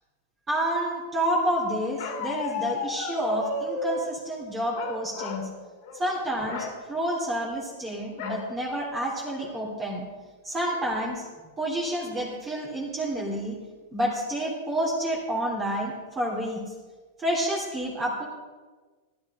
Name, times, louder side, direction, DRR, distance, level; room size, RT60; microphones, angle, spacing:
voice 1, 0.5-5.5 5.9-10.0 10.4-11.3 11.6-13.6 13.9-16.6 17.2-18.2, right 1 dB, 20° right, -4 dB, 3.3 m, -29 dB
Bark, 2.0-4.1 4.7-5.5 5.8-6.0 6.4-6.8 8.2-8.5 9.0-9.1 9.4-9.9, left 3 dB, 60° left, 2.8 m, -33 dB
15.0 x 11.5 x 5.0 m, 1.4 s
hypercardioid pair, 125°, 0 cm